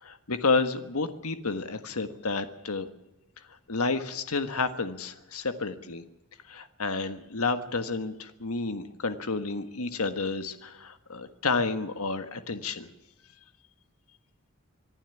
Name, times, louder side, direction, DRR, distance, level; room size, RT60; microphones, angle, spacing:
voice 1, 0.0-2.9 3.7-6.0 6.5-12.9, left 3 dB, 85° left, 10 dB, 1.5 m, -30 dB
25.0 x 11.5 x 9.6 m, 0.90 s
head